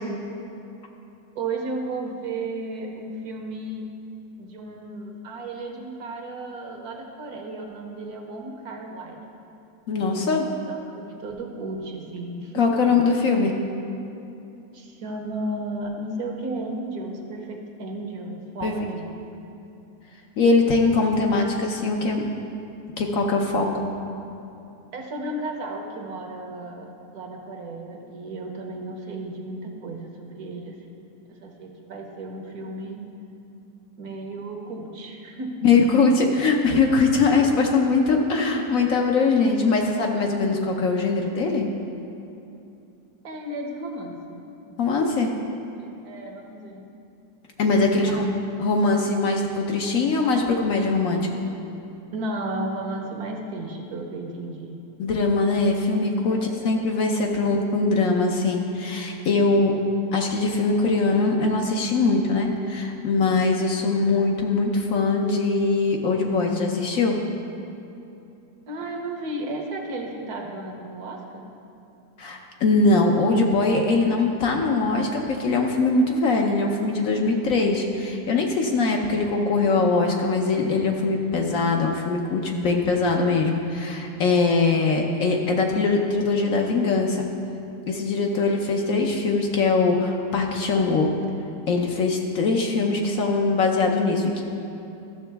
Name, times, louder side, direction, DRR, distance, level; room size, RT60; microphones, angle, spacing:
voice 1, 1.3-3.9 4.4-9.3 10.1-10.4 10.7-12.7 14.7-19.1 24.9-30.8 31.3-33.0 34.0-35.6 37.3-37.5 43.2-45.0 45.8-46.9 47.9-48.2 52.1-54.8 56.3-56.7 68.7-71.5, right 2 dB, 70° right, 2 dB, 1.4 m, -34 dB
voice 2, 9.9-10.5 12.6-13.5 18.6-18.7 20.4-22.3 23.0-23.9 35.6-41.7 44.8-45.3 47.6-48.3 48.6-51.3 55.0-59.8 60.1-67.2 72.2-87.3 87.9-91.1 91.7-94.4, left 3 dB, 65° left, 1 dB, 1.0 m, -22 dB
13.0 x 6.8 x 3.4 m, 2.8 s
omnidirectional pair, 1.8 m